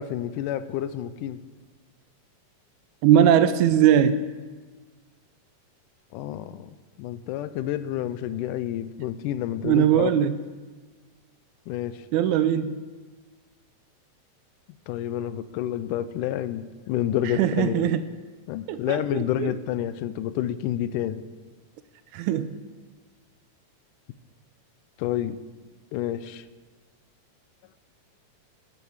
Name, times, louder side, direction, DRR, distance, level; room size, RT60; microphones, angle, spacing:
voice 1, 0.0-1.4 6.1-10.1 11.7-12.1 14.9-17.9 18.5-21.2 25.0-25.4 25.9-26.5, left 11 dB, 85° left, 14 dB, 2.1 m, -29 dB
voice 2, 3.0-4.2 9.6-10.4 12.1-12.8 17.4-18.0 18.7-19.5 22.1-22.6, right 10 dB, 80° right, 12 dB, 1.9 m, -20 dB
13.0 x 13.0 x 4.8 m, 1.4 s
omnidirectional pair, 3.7 m